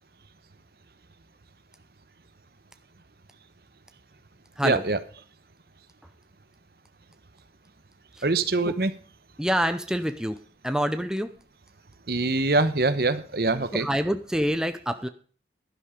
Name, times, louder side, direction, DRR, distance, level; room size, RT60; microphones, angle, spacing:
voice 1, 4.6-5.0 8.2-8.9 12.1-13.9, right 3 dB, 60° right, 12 dB, 1.0 m, -24 dB
voice 2, 9.4-10.4 10.6-11.3 13.7-15.1, equal, 5° right, 9 dB, 0.6 m, -26 dB
11.5 x 10.5 x 5.1 m, 0.42 s
head